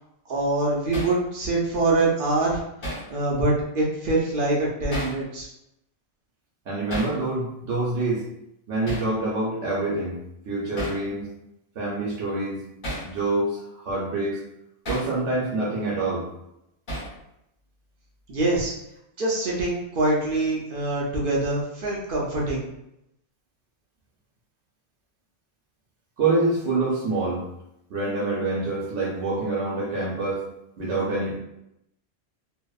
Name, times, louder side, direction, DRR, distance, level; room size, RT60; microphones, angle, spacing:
voice 1, 0.3-2.6 3.1-5.5 18.3-18.7 19.2-22.6, right 2 dB, 60° right, -4 dB, 0.6 m, -24 dB
Hammer, 0.9-1.2 2.8-3.1 4.9-5.2 6.9-7.2 8.9-9.1 10.8-11.0 12.8-13.1 14.8-15.1 16.9-17.2, right 1 dB, 45° left, 1.0 m, -32 dB
voice 2, 6.7-8.2 8.7-10.2 10.5-11.3 11.8-12.6 13.0-14.4 14.9-16.3 26.2-27.4 27.9-30.4 30.8-31.4, right 2 dB, 80° right, -5 dB, 1.0 m, -26 dB
2.6 x 2.0 x 2.2 m, 0.83 s
omnidirectional pair, 1.2 m